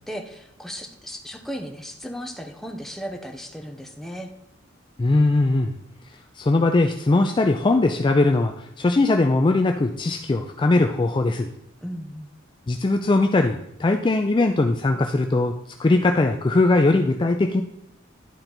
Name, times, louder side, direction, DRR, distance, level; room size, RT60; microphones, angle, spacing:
voice 1, 0.0-4.3 11.8-12.3, equal, ahead, 3 dB, 0.7 m, -35 dB
voice 2, 5.0-5.7 6.4-11.5 12.7-15.5 15.8-17.6, left 2 dB, 25° left, 4 dB, 0.4 m, -20 dB
10.5 x 3.9 x 4.4 m, 0.78 s
head